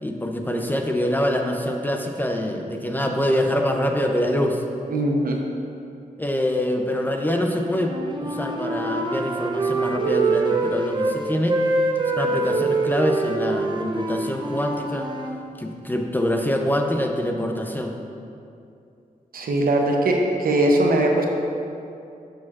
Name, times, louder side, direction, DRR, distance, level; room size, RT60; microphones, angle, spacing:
voice 1, 0.0-4.6 6.2-8.0 8.2-11.6 12.1-15.1 15.6-18.0, equal, 15° left, 3 dB, 0.5 m, -25 dB
voice 2, 4.9-5.4 19.3-21.3, right 1 dB, 80° right, 1 dB, 0.7 m, -20 dB
Wind instrument woodwind instrument, 7.8-11.2 11.5-15.3, right 3 dB, 30° right, 0.6 m, -25 dB
7.1 x 6.3 x 2.4 m, 2.6 s
wide cardioid pair, 90°, 15 cm